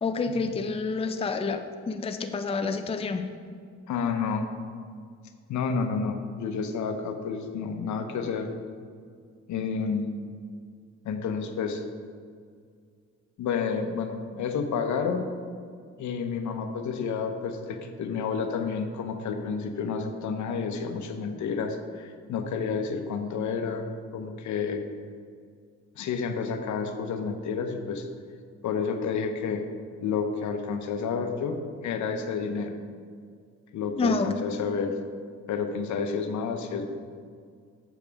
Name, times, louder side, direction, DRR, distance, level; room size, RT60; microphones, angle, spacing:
voice 1, 0.0-3.3 34.0-34.3, left 4 dB, 20° left, 7 dB, 0.5 m, -28 dB
voice 2, 3.9-4.5 5.5-8.5 9.5-10.1 11.0-11.8 13.4-15.2 16.0-24.8 26.0-28.1 28.6-29.6 30.0-31.6 31.8-32.7 33.7-35.0 35.5-36.9, left 5 dB, 70° left, 6 dB, 0.9 m, -30 dB
8.1 x 7.0 x 3.5 m, 2.1 s
cardioid pair, 90°, 30 cm